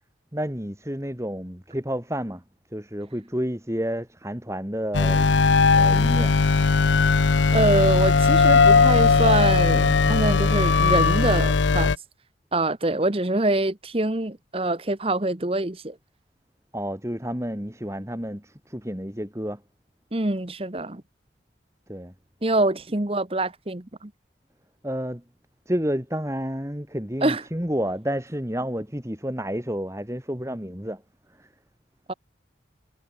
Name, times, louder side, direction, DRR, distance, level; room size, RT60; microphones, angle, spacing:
voice 1, 0.3-2.4 2.7-5.3 5.7-6.4 16.7-19.6 21.9-22.1 24.8-25.2 25.7-31.0 31.4-31.5, equal, 15° right, 3.6 m, -30 dB
sound 1, 4.9-12.0, left 4 dB, 85° left, 0.7 m, -18 dB
sound 2, 6.0-11.8, right 1 dB, 80° right, 5.6 m, -44 dB
voice 2, 7.5-11.9 12.5-15.9 20.1-21.0 22.4-24.1 27.2-27.4 32.1-32.2, right 2 dB, 30° right, 1.2 m, -25 dB
head